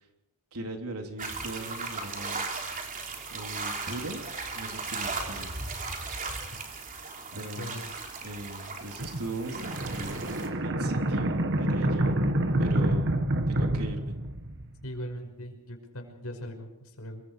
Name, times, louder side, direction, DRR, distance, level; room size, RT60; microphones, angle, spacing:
voice 1, 0.5-2.6 3.3-4.3 4.5-5.6 7.3-7.8 8.2-10.3 10.6-12.2 12.6-14.2, right 1 dB, 85° right, 3 dB, 3.6 m, -39 dB
sound 1, 1.2-10.5, right 4 dB, 40° right, 3.5 m, -37 dB
voice 2, 7.6-7.9 14.8-17.2, equal, 80° left, 4 dB, 5.6 m, -39 dB
sound 2, 9.0-14.8, right 1 dB, 55° right, 1.8 m, -28 dB
26.5 x 23.5 x 5.0 m, 0.93 s
head